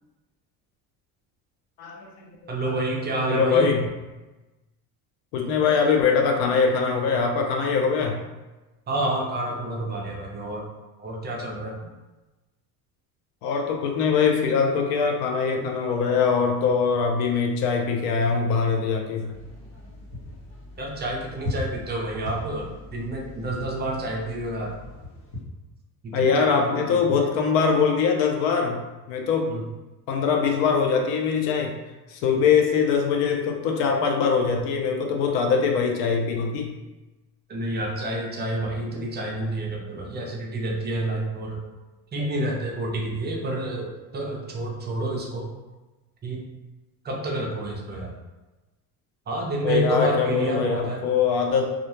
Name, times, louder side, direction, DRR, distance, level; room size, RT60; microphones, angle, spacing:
voice 1, 1.8-2.8 3.3-3.8 5.3-8.2 13.4-19.4 26.1-29.6 30.1-31.8 32.1-36.7 49.6-51.7, left 5 dB, 85° left, 3 dB, 0.6 m, -23 dB
voice 2, 2.5-3.7 8.9-10.6 11.0-11.8 20.8-24.8 26.0-27.3 29.5-29.6 37.5-41.6 42.1-45.5 46.2-46.5 47.0-48.1 49.3-51.0, right 1 dB, 25° right, -1 dB, 0.4 m, -29 dB
sound 1, 19.3-25.4, left 2 dB, 70° left, 1.1 m, -38 dB
2.4 x 2.1 x 2.9 m, 1.1 s
cardioid pair, 115°, 40 cm